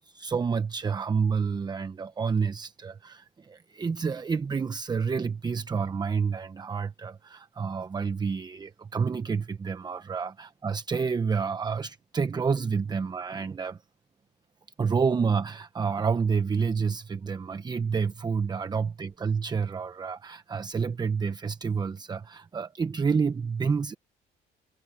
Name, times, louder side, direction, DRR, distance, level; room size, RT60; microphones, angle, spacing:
voice 1, 0.1-13.8 14.8-23.9, right 5 dB, 25° right, 0.8 m, -29 dB
cardioid pair, 110°, 17 cm